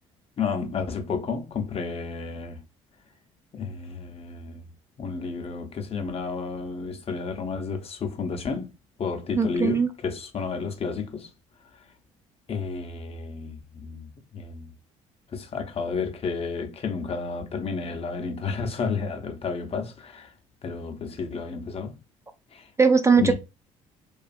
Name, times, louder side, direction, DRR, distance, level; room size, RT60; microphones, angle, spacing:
voice 1, 0.4-2.6 3.5-4.7 5.0-8.7 9.0-11.3 12.5-14.7 15.3-20.3 20.6-22.0 22.5-22.7 23.1-23.3, left 5 dB, 40° left, 0.7 m, -31 dB
voice 2, 9.3-9.9 22.8-23.3, right 5 dB, 20° right, 0.4 m, -19 dB
2.5 x 2.4 x 2.4 m
supercardioid pair, 70°, 15 cm